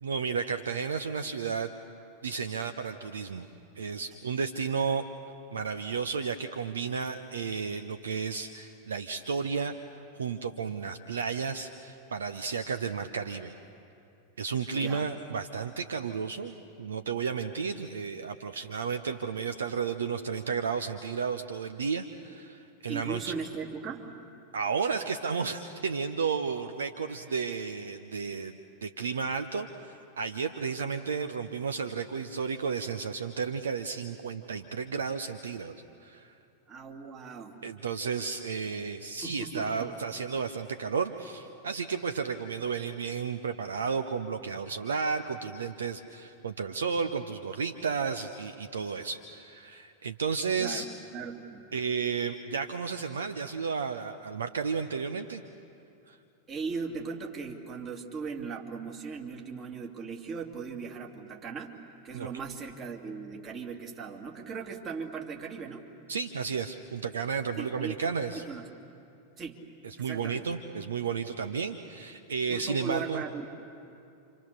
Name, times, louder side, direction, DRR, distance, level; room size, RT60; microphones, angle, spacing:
voice 1, 0.0-1.7 2.2-3.5 3.8-5.0 5.5-9.7 10.2-13.5 14.4-23.3 24.5-28.5 28.8-35.7 36.0-36.3 37.6-50.9 51.7-55.4 56.1-56.2 62.1-62.3 66.1-68.4 69.8-73.2, right 5 dB, 70° right, 8 dB, 0.8 m, -33 dB
voice 2, 14.7-15.1 22.9-24.3 31.0-31.1 36.7-37.6 39.2-40.0 50.6-50.9 51.1-51.7 56.5-61.8 62.0-65.9 67.6-68.0 68.3-68.7 69.4-69.6 70.0-70.4 72.5-73.5, right 5 dB, 30° right, 1 dB, 2.7 m, -38 dB
29.0 x 26.5 x 6.7 m, 2.6 s
figure-of-eight pair, 90°, 0 cm